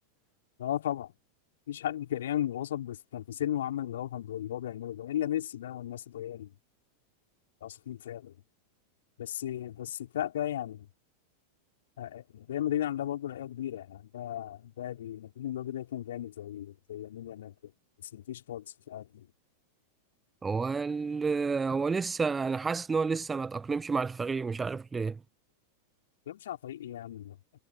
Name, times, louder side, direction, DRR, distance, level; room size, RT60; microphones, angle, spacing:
voice 1, 0.6-1.1 1.7-6.5 7.6-8.3 9.2-10.9 12.0-17.5 18.0-19.3 26.3-27.4, left 11 dB, 60° left, 4.4 m, -35 dB
voice 2, 20.4-25.2, right 4 dB, 15° right, 1.2 m, -30 dB
figure-of-eight pair, 90°, 0 cm